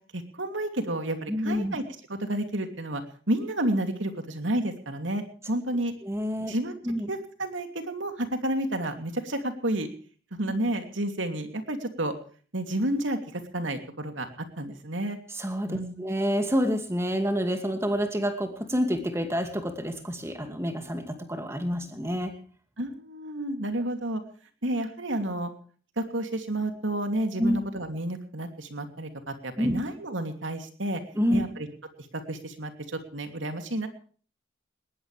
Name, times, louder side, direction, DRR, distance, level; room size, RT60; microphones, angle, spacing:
voice 1, 0.1-1.8 2.1-3.0 3.3-5.9 6.5-6.8 7.1-9.9 10.3-12.1 12.5-14.3 14.6-15.2 15.7-16.0 22.8-24.2 24.6-25.5 26.0-31.0 31.3-31.7 32.3-33.9, right 1 dB, 80° right, 6 dB, 2.9 m, -30 dB
voice 2, 1.3-1.8 6.0-6.5 6.8-7.1 15.3-22.3 27.4-27.6 29.6-29.8 31.1-31.4, equal, 15° right, 6 dB, 2.4 m, -28 dB
20.0 x 19.5 x 3.4 m, 0.43 s
head